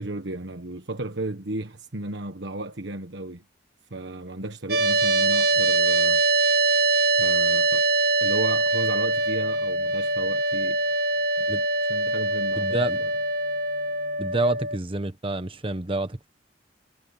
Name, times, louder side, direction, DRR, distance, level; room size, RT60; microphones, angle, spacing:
voice 1, 0.0-3.4 3.9-6.2 7.2-7.9 8.2-10.8 11.4-11.5 11.8-13.1, right 2 dB, 85° right, 1.4 m, -34 dB
sound 1, 4.7-14.8, right 2 dB, 60° right, 1.4 m, -23 dB
voice 2, 12.6-13.0 14.2-16.3, right 2 dB, 30° right, 1.3 m, -27 dB
head